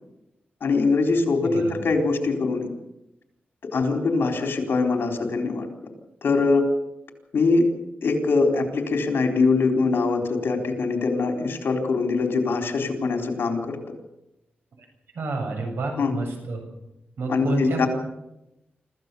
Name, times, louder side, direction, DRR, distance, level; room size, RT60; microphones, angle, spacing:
voice 1, 0.6-2.7 3.7-5.7 6.2-6.7 7.3-7.6 8.0-13.8 16.0-16.1 17.3-17.9, left 4 dB, 75° left, 4 dB, 4.0 m, -22 dB
voice 2, 15.1-16.6 17.2-17.9, right 2 dB, 80° right, 3 dB, 7.5 m, -29 dB
25.5 x 15.0 x 7.0 m, 0.89 s
wide cardioid pair, 115°, 4 cm